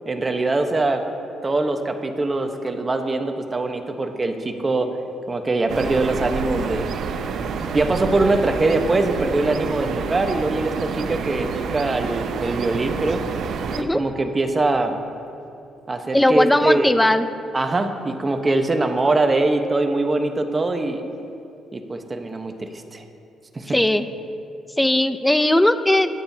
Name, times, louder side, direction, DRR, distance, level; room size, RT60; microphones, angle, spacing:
voice 1, 0.0-1.0 1.4-4.9 5.3-6.9 7.7-13.2 13.8-15.0 15.9-16.9 17.5-21.0 21.7-23.0 23.5-23.8, right 2 dB, 25° right, 5 dB, 1.1 m, -22 dB
sound 1, 5.7-13.8, right 5 dB, 70° right, 0.7 m, -28 dB
voice 2, 16.1-17.3 23.7-24.1 24.8-26.1, left 1 dB, 10° left, 10 dB, 0.6 m, -18 dB
22.0 x 9.2 x 2.8 m, 2.7 s
cardioid pair, 90°, 0 cm